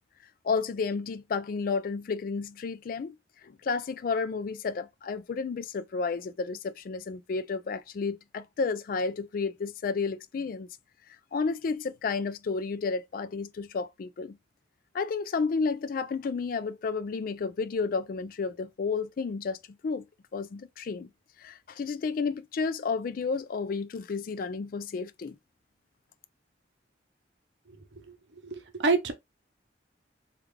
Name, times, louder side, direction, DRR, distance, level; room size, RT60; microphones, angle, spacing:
voice 1, 0.4-3.2 3.4-10.7 11.3-14.4 14.9-20.0 20.3-21.1 21.4-25.4, left 4 dB, 50° left, 0.3 m, -31 dB
voice 2, 28.4-29.1, right 4 dB, 70° right, 0.7 m, -27 dB
3.5 x 2.4 x 3.2 m
head